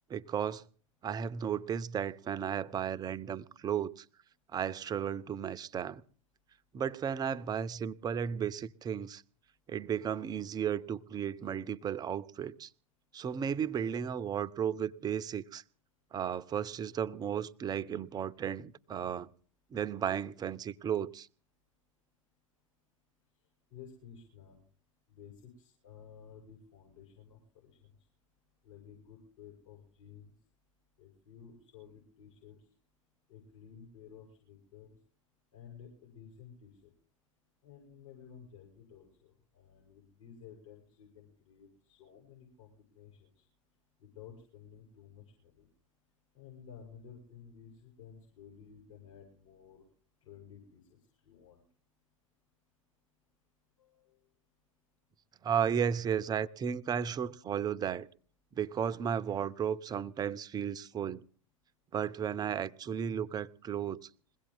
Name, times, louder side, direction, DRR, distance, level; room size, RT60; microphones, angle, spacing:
voice 1, 0.1-0.6 1.0-4.0 4.5-6.0 6.7-9.2 9.7-12.7 13.1-15.6 16.1-19.3 19.7-21.3 55.4-58.1 58.6-61.2 61.9-64.1, right 8 dB, 20° right, 0.7 m, -34 dB
voice 2, 23.7-24.6 25.1-28.1 28.6-30.3 31.0-32.7 33.3-35.0 35.5-36.9 37.6-43.5 44.0-45.7 46.3-49.8 50.2-51.6 53.8-54.2, left 7 dB, 70° left, 7.5 m, -54 dB
21.5 x 17.0 x 3.9 m
figure-of-eight pair, 90°, 17 cm